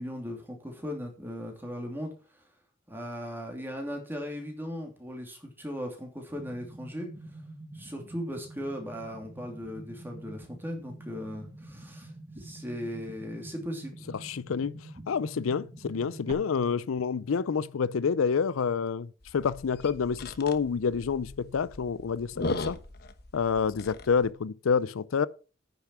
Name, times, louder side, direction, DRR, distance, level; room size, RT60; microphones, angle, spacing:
voice 1, 0.0-2.1 2.9-7.1 7.7-12.1 12.4-14.1, equal, 10° right, 2.9 m, -38 dB
sound 1, 6.3-16.3, right 1 dB, 30° right, 1.4 m, -46 dB
voice 2, 14.1-22.8 23.3-25.3, left 6 dB, 85° left, 0.5 m, -28 dB
sound 2, 19.2-24.3, left 2 dB, 50° left, 1.1 m, -39 dB
9.7 x 6.9 x 5.8 m
head